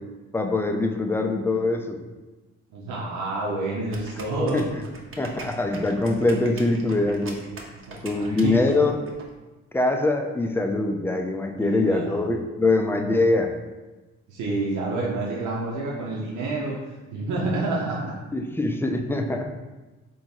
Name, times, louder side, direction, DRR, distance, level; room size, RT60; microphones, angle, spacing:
voice 1, 0.3-2.0 4.5-4.7 5.2-7.4 8.0-9.0 9.7-13.6 18.3-19.5, left 2 dB, 10° left, 4 dB, 0.4 m, -23 dB
voice 2, 2.7-4.8 8.2-8.6 11.6-12.2 14.3-18.0, right 2 dB, 80° right, -4 dB, 0.9 m, -28 dB
sound 1, 3.9-9.2, right 3 dB, 45° right, 0.9 m, -42 dB
3.5 x 3.1 x 4.4 m, 1.1 s
cardioid pair, 90°, 30 cm